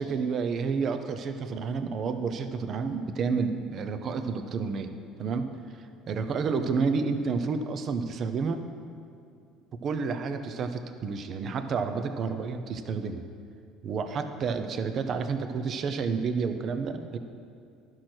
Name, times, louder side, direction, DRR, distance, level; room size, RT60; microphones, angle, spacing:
voice 1, 0.0-4.9 5.2-5.6 6.1-8.6 9.8-13.2 13.8-17.2, right 5 dB, 45° right, 8 dB, 0.7 m, -30 dB
11.5 x 6.3 x 4.4 m, 2.3 s
cardioid pair, 115°, 0 cm